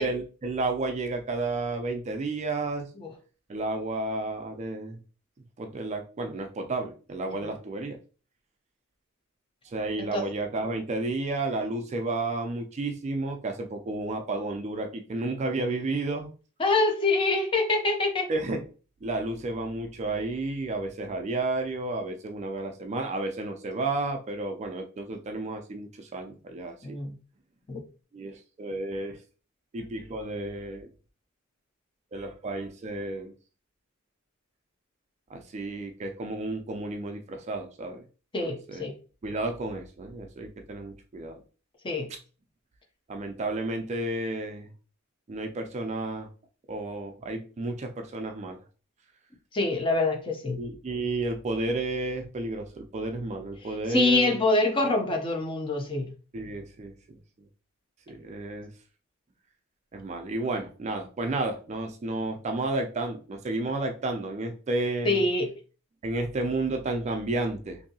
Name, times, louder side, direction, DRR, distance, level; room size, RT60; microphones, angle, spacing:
voice 1, 0.0-2.9 3.5-5.0 5.6-8.0 9.6-16.3 18.3-18.6 19.0-27.0 28.1-29.2 29.7-30.9 32.1-33.3 35.3-38.0 38.4-38.8 39.2-41.4 43.1-44.7 45.3-46.3 46.7-48.6 50.5-54.4 56.3-57.2 58.1-58.7 59.9-65.2 66.0-67.8, right 2 dB, 35° right, 0.3 m, -32 dB
voice 2, 16.6-18.3 26.8-27.1 27.7-27.8 38.3-38.9 41.8-42.1 49.5-50.6 53.6-56.1 65.0-65.5, left 2 dB, 25° left, 0.5 m, -25 dB
2.6 x 2.6 x 2.7 m
head